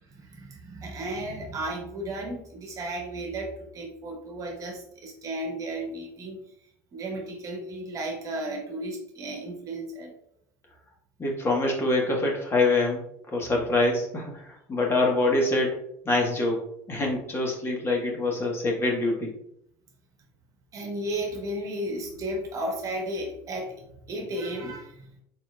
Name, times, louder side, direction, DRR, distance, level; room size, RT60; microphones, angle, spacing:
voice 1, 0.0-6.4 6.9-10.1 20.7-25.1, right 1 dB, 40° right, 2 dB, 1.2 m, -34 dB
voice 2, 11.2-13.0 13.3-15.8 16.0-19.3, left 2 dB, 30° left, 0 dB, 1.3 m, -25 dB
4.3 x 4.1 x 2.3 m, 0.73 s
supercardioid pair, 90°, 8 cm